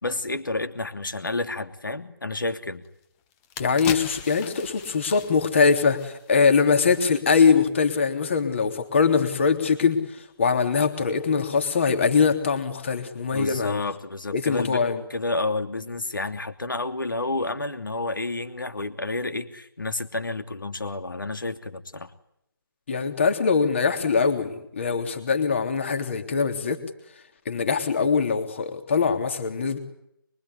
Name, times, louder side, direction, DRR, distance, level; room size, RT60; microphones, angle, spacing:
voice 1, 0.0-2.8 13.3-14.8 15.1-22.1, left 2 dB, 60° left, 8 dB, 3.0 m, -30 dB
sound 1, 2.8-2.9 3.3-6.6 6.9-7.1, left 8 dB, 10° left, 1.1 m, -38 dB
voice 2, 3.6-13.8 14.3-15.0 22.9-26.8 27.4-29.8, left 5 dB, 30° left, 6 dB, 3.4 m, -22 dB
24.5 x 23.5 x 9.8 m, 0.78 s
figure-of-eight pair, 150°, 12 cm